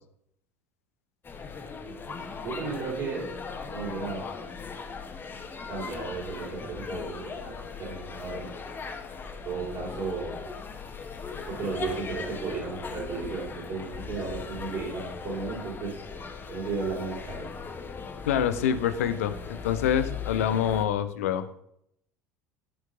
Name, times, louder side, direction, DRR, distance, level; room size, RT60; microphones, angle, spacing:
sound 1, 1.2-20.9, left 5 dB, 25° left, 1.3 m, -39 dB
voice 1, 1.8-3.3 3.6-4.3 5.7-8.5 9.5-10.4 11.5-16.0 16.5-17.5, right 4 dB, 45° right, -8 dB, 3.5 m, -34 dB
voice 2, 18.3-19.3 19.6-21.5, left 9 dB, 65° left, 11 dB, 0.7 m, -26 dB
12.5 x 4.6 x 3.7 m, 0.72 s
figure-of-eight pair, 70°, 8 cm